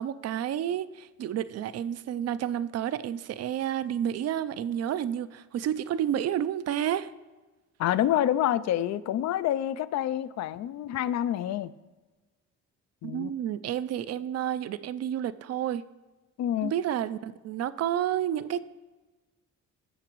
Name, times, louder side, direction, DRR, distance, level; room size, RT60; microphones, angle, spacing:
voice 1, 0.0-7.1 13.0-15.8 16.6-18.6, right 10 dB, 55° right, 0.5 m, -30 dB
voice 2, 7.8-11.7 13.0-13.3 16.4-16.7, left 11 dB, 60° left, 0.4 m, -27 dB
15.5 x 5.8 x 3.1 m
cardioid pair, 90°, 30 cm